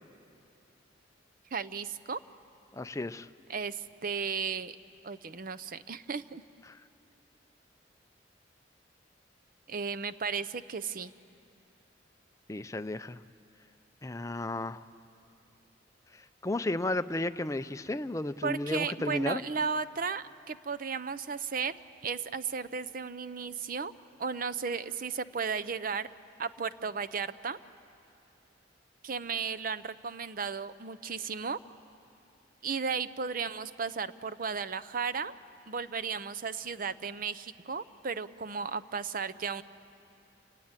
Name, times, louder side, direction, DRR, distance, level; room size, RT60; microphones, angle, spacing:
voice 1, 1.5-2.2 3.5-4.8 5.0-6.4 9.7-11.1 18.4-21.7 22.0-23.9 24.2-26.1 26.4-27.6 29.0-31.6 32.6-35.3 35.7-39.6, right 5 dB, 50° right, 14 dB, 0.6 m, -34 dB
voice 2, 2.7-3.3 6.7-6.8 12.5-13.2 14.0-14.8 16.4-19.4, left 2 dB, 15° left, 12 dB, 0.5 m, -33 dB
29.5 x 19.0 x 9.0 m, 2.7 s
head